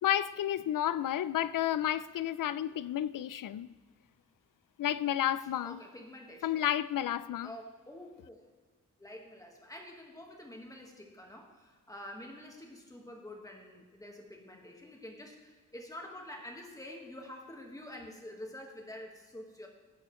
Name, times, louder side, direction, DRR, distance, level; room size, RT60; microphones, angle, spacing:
voice 1, 0.0-3.7 4.8-5.8 6.4-7.5, left 11 dB, 75° left, 0.5 m, -31 dB
voice 2, 5.6-6.6 7.4-8.5 9.0-19.7, left 1 dB, 10° left, 1.6 m, -47 dB
17.5 x 8.7 x 3.2 m
wide cardioid pair, 155°, 32 cm